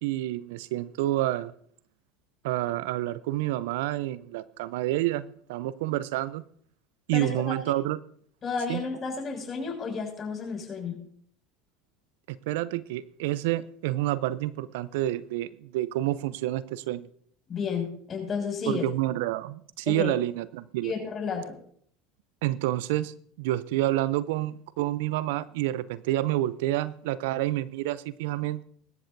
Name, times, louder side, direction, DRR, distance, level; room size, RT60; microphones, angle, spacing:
voice 1, 0.0-1.5 2.4-6.4 7.1-8.0 8.7-8.8 12.3-17.1 18.7-20.9 22.4-28.6, right 15 dB, 70° right, 0.5 m, -29 dB
voice 2, 7.1-7.5 8.4-11.0 17.5-18.9 19.9-20.1 20.8-21.6, left 5 dB, 35° left, 6.2 m, -32 dB
23.0 x 12.5 x 2.7 m
hypercardioid pair, 80°, 0 cm